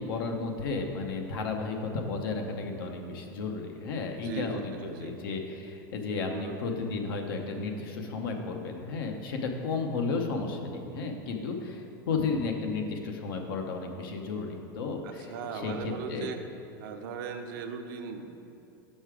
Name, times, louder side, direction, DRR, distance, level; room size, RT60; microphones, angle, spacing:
voice 1, 0.0-16.3, left 4 dB, 75° left, 3 dB, 0.9 m, -33 dB
voice 2, 4.1-5.1 6.2-6.6 15.0-16.4 16.8-18.3, right 6 dB, 70° right, 5 dB, 0.7 m, -38 dB
6.7 x 5.4 x 4.8 m, 2.7 s
supercardioid pair, 130°, 12 cm